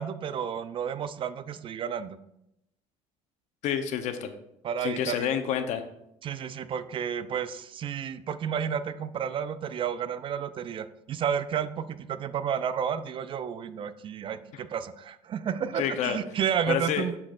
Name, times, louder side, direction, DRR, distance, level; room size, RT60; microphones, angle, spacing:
voice 1, 0.0-2.2 4.6-5.2 6.2-17.2, right 8 dB, 40° right, 13 dB, 0.4 m, -31 dB
voice 2, 3.6-4.3 4.8-5.8 14.5-14.6 15.8-16.2 16.7-17.1, left 9 dB, 65° left, 8 dB, 0.8 m, -28 dB
11.5 x 4.3 x 2.5 m, 0.81 s
cardioid pair, 110°, 13 cm